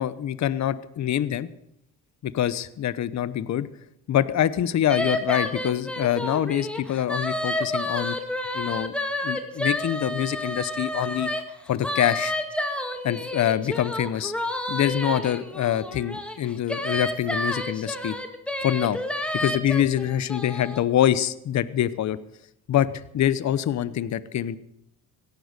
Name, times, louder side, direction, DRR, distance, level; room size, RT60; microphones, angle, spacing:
voice 1, 0.0-1.5 2.2-3.7 4.1-8.2 8.5-8.9 9.2-11.3 11.7-12.3 13.0-14.3 14.7-18.2 18.6-19.0 19.3-22.2 22.7-24.6, left 11 dB, 55° left, 16 dB, 0.9 m, -25 dB
sound 1, 4.9-11.4 11.8-20.8, left 1 dB, 5° left, 2.1 m, -30 dB
17.0 x 12.0 x 6.7 m, 0.75 s
cardioid pair, 95°, 34 cm